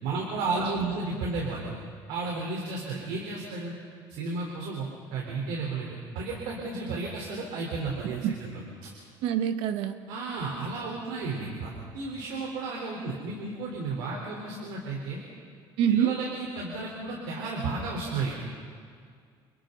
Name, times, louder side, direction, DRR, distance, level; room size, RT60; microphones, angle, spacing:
voice 1, 0.0-1.7 2.1-3.7 4.1-8.9 10.1-15.2 15.9-18.3, right 3 dB, 85° right, -2 dB, 4.1 m, -33 dB
voice 2, 0.6-0.9 8.0-8.4 9.2-9.9 15.8-16.1, right 9 dB, 70° right, 8 dB, 1.4 m, -26 dB
29.5 x 28.0 x 4.0 m, 2.1 s
cardioid pair, 175°, 9 cm